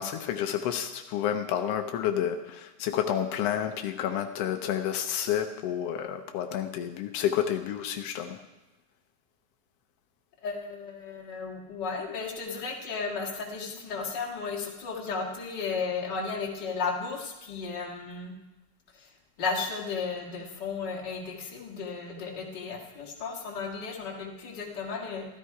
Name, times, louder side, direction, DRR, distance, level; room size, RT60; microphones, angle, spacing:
voice 1, 0.0-8.4, left 10 dB, 90° left, 6 dB, 1.3 m, -30 dB
voice 2, 10.4-18.3 19.4-25.3, left 4 dB, 40° left, 0 dB, 2.0 m, -34 dB
14.0 x 13.0 x 4.7 m, 1.1 s
omnidirectional pair, 3.7 m